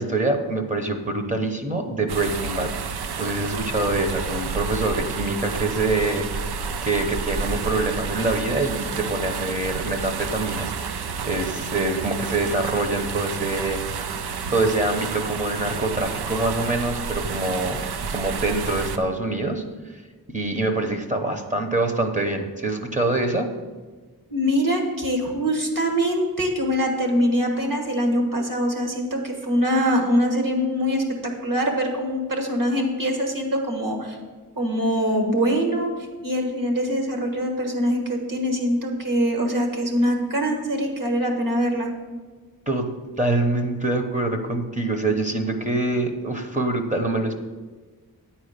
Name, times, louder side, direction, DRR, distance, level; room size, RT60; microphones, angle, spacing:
voice 1, 0.0-6.6 6.8-14.2 14.5-17.8 18.1-19.6 20.3-23.5 42.7-42.9 43.2-47.3, right 2 dB, 20° right, 4 dB, 0.9 m, -25 dB
sound 1, 2.1-19.0, right 5 dB, 85° right, 0.6 m, -30 dB
voice 2, 24.3-34.2 34.6-35.9 36.2-41.9, equal, 60° right, 2 dB, 1.6 m, -23 dB
9.2 x 4.4 x 6.6 m, 1.3 s
wide cardioid pair, 75°, 38 cm